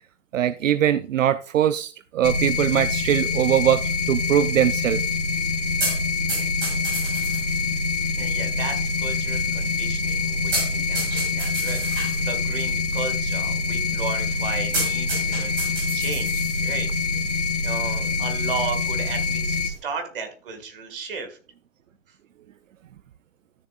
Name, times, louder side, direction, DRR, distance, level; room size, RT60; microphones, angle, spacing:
voice 1, 0.3-5.0, right 11 dB, 80° right, 14 dB, 0.6 m, -22 dB
sound 1, 2.2-19.7, left 4 dB, 70° left, 1.6 m, -25 dB
sound 2, 2.3-19.8, right 2 dB, 25° right, 5.3 m, -35 dB
voice 2, 8.2-16.9 17.6-21.4, right 5 dB, 45° right, 6 dB, 2.0 m, -35 dB
13.0 x 6.9 x 2.5 m, 0.38 s
hypercardioid pair, 170°, 38 cm